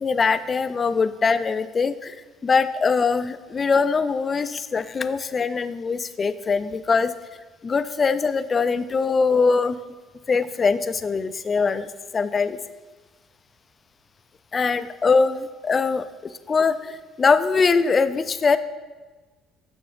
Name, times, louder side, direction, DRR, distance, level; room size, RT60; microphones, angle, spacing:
voice 1, 0.0-2.2 2.4-7.1 7.6-9.8 10.3-12.6 14.5-18.6, left 4 dB, 30° left, 13 dB, 0.3 m, -22 dB
6.8 x 6.1 x 3.2 m, 1.3 s
cardioid pair, 110°, 0 cm